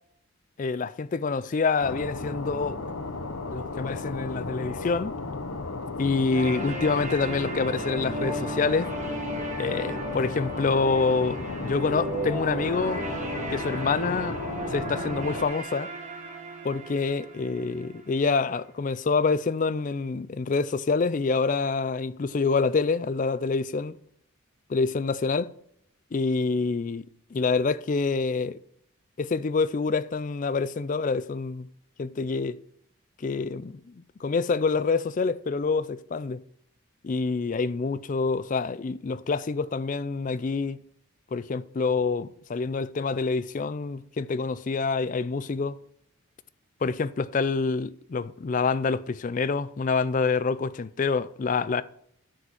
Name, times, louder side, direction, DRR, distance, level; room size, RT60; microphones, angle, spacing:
voice 1, 0.6-2.8 3.5-5.2 6.0-8.9 9.6-13.0 13.5-14.4 14.7-15.9 16.6-24.0 24.7-25.5 26.1-28.6 29.2-31.7 32.0-32.6 33.2-33.8 34.2-36.4 37.0-40.8 41.3-45.8 46.8-51.8, left 4 dB, 35° left, 0.3 m, -27 dB
sound 1, 1.8-15.5, left 3 dB, 80° left, 0.9 m, -35 dB
sound 2, 6.3-18.3, right 1 dB, 35° right, 1.5 m, -35 dB
9.9 x 4.9 x 6.2 m
head